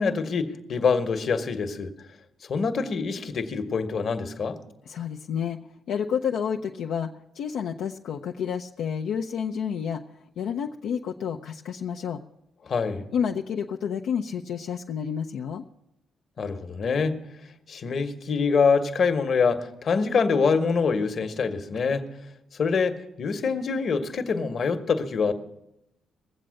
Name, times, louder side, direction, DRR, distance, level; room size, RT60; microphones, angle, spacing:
voice 1, 0.0-1.9 2.5-4.6 12.7-13.0 16.4-17.2 17.7-22.1 22.6-25.3, left 5 dB, 55° left, 1.2 m, -25 dB
voice 2, 4.8-5.6 5.9-10.0 10.4-12.2 13.1-15.6, left 7 dB, 75° left, 0.6 m, -30 dB
20.0 x 7.8 x 6.4 m
cardioid pair, 90°, 0 cm